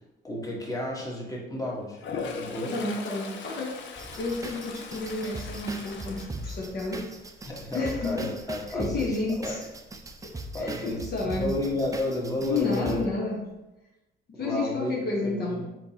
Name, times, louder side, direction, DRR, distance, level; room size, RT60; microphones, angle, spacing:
voice 1, 0.2-2.0 2.3-2.8 7.4-9.1 9.4-9.5 10.5-13.0 14.4-15.0 15.2-15.7, left 1 dB, 15° left, -2 dB, 1.3 m, -32 dB
Toilet flush, 1.9-7.1 7.5-7.9 12.4-12.5 12.8-13.5, left 5 dB, 70° left, 0.6 m, -40 dB
voice 2, 2.7-3.9 4.2-7.1 7.4-8.3 8.7-9.6 10.2-11.5 12.5-13.4 14.3-15.6, left 3 dB, 55° left, -2 dB, 0.9 m, -31 dB
sound 1, 4.0-13.0, right 2 dB, 15° right, 0.5 m, -39 dB
4.4 x 4.1 x 2.8 m, 0.98 s
cardioid pair, 90°, 20 cm